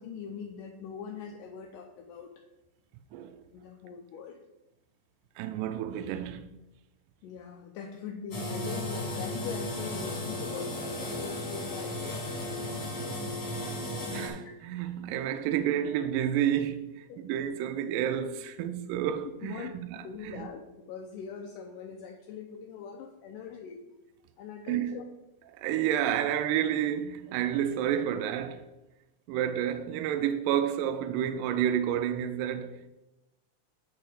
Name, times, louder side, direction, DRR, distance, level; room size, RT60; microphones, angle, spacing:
voice 1, 0.0-2.3 3.5-4.4 7.2-12.3 14.4-14.5 17.1-17.2 19.4-19.7 20.0-23.8 24.4-25.1, left 7 dB, 80° left, 2.2 m, -42 dB
voice 2, 5.4-6.5 13.6-20.5 24.7-25.0 25.6-28.7 29.3-32.9, right 10 dB, 85° right, 2.2 m, -30 dB
sound 1, 8.3-14.3, left 1 dB, 35° left, 2.7 m, -35 dB
8.2 x 4.7 x 5.0 m
omnidirectional pair, 4.0 m